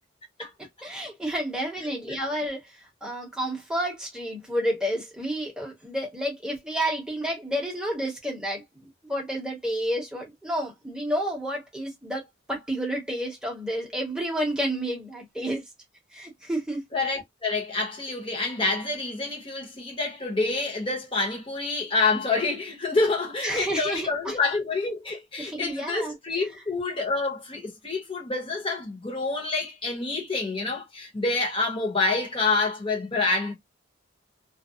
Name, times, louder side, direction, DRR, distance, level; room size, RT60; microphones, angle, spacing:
voice 1, 0.8-2.6 3.0-12.2 12.5-15.6 16.1-16.8 23.4-24.4 25.4-26.1, equal, 5° right, 0.9 m, -30 dB
voice 2, 1.9-2.2 16.9-33.5, left 3 dB, 25° left, 1.0 m, -27 dB
2.4 x 2.2 x 2.6 m
head